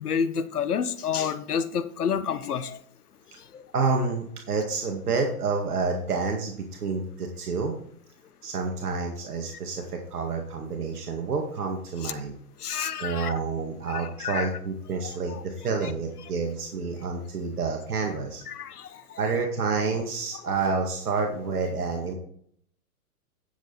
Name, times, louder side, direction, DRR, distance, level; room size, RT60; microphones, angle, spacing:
voice 1, 0.0-2.8 3.5-3.6 12.0-12.1 12.6-13.3 13.9-14.5 15.3-15.4 18.5-19.0 21.2-21.3, left 7 dB, 80° left, 12 dB, 1.2 m, -29 dB
voice 2, 3.7-7.7 8.4-12.4 13.0-18.4 19.2-22.1, right 4 dB, 75° right, 2 dB, 2.1 m, -29 dB
10.5 x 7.5 x 4.1 m, 0.63 s
hypercardioid pair, 135°, 45 cm